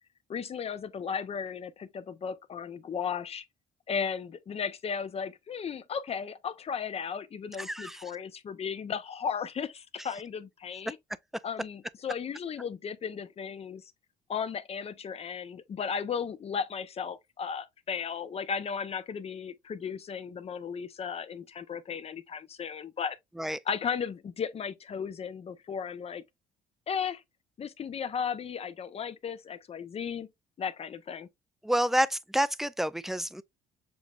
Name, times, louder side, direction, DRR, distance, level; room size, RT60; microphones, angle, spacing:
voice 1, 0.3-3.4 3.9-11.0 11.4-13.9 14.3-23.2 23.7-26.2 26.9-27.2 27.6-30.3 30.6-31.3, left 6 dB, 35° left, 0.7 m, -35 dB
voice 2, 7.6-8.0 23.4-23.6 31.6-33.4, equal, ahead, 0.3 m, -28 dB
7.0 x 3.1 x 2.4 m
cardioid pair, 110°, 17 cm